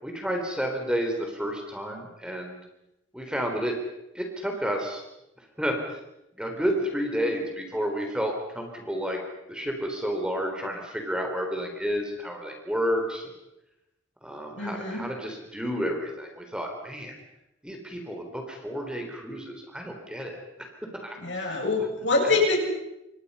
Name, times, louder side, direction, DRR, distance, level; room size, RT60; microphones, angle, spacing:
voice 1, 0.0-2.7 3.1-3.8 4.1-5.0 5.4-6.0 6.4-9.2 9.5-13.3 14.2-17.1 17.6-20.4 21.0-21.9 22.2-22.4, equal, 5° right, 2 dB, 3.9 m, -31 dB
voice 2, 14.6-15.0 21.2-22.6, left 3 dB, 60° left, 1 dB, 7.6 m, -25 dB
29.0 x 25.0 x 5.7 m, 0.88 s
head